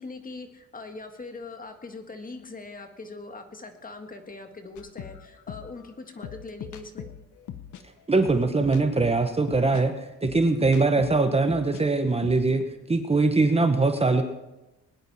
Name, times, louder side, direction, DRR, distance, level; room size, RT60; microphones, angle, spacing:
voice 1, 0.0-7.1, left 3 dB, 30° left, 6 dB, 1.8 m, -41 dB
sound 1, 4.8-11.8 12.1-12.6, left 9 dB, 75° left, 1.1 m, -41 dB
voice 2, 8.1-12.6 12.9-14.2, right 3 dB, 20° right, 7 dB, 1.1 m, -22 dB
20.5 x 10.5 x 4.2 m, 1.0 s
cardioid pair, 90°, 30 cm